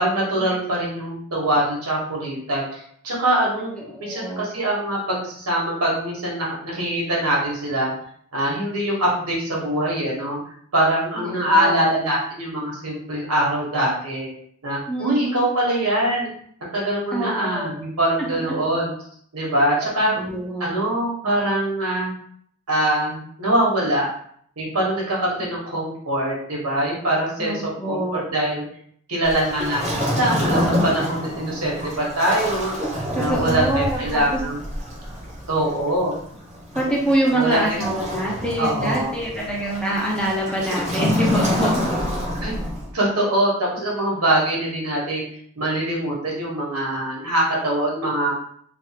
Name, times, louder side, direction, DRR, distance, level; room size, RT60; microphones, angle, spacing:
voice 1, 0.0-7.9 8.3-10.4 10.7-14.3 14.6-16.3 16.7-18.9 19.3-20.1 20.6-22.1 22.7-24.1 24.6-27.5 27.9-28.6 29.1-32.8 33.1-34.6 35.5-36.2 37.3-37.8 38.6-39.2 42.4-42.5 42.9-45.2 45.5-48.3, right 1 dB, 90° right, -4 dB, 1.2 m, -23 dB
voice 2, 3.9-4.5 11.2-11.9 14.9-15.4 17.1-17.7 20.0-20.7 27.4-28.2 33.1-34.4 36.7-41.8, right 1 dB, 5° left, -4 dB, 0.6 m, -25 dB
Waves surf, 29.2-42.9, equal, 30° right, 0.8 m, -27 dB
3.2 x 2.4 x 2.8 m, 0.63 s
head